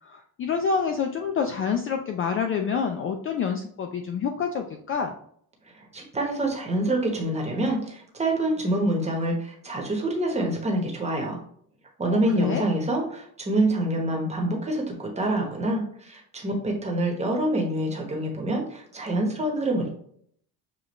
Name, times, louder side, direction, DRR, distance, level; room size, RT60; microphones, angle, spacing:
voice 1, 0.0-5.1 12.0-12.6, left 6 dB, 35° left, 4 dB, 0.4 m, -27 dB
voice 2, 5.9-11.4 12.0-19.9, right 1 dB, 15° right, 1 dB, 1.1 m, -26 dB
6.8 x 2.4 x 3.1 m, 0.64 s
cardioid pair, 140°, 38 cm